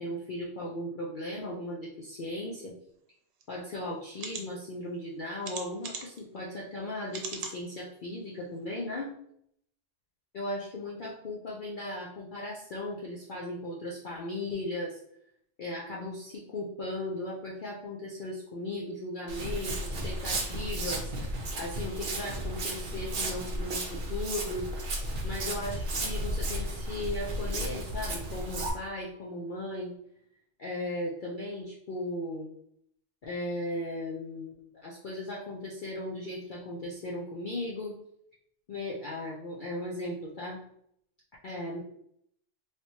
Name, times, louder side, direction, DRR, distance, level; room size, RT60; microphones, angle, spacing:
voice 1, 0.0-2.7 3.5-9.1 10.3-15.0 15.6-24.7 25.2-30.0 30.6-32.5 33.2-38.0 38.7-40.6 41.4-41.8, left 1 dB, 55° left, -4 dB, 0.6 m, -37 dB
sound 1, 3.4-3.5 4.1-4.4 5.4-6.2 7.1-7.6 8.1-8.2 8.6-8.7, right 5 dB, 90° right, 1.0 m, -39 dB
Walk footsteps, 19.3-28.7, right 1 dB, 50° right, 0.7 m, -34 dB
3.2 x 2.9 x 2.8 m, 0.71 s
omnidirectional pair, 1.3 m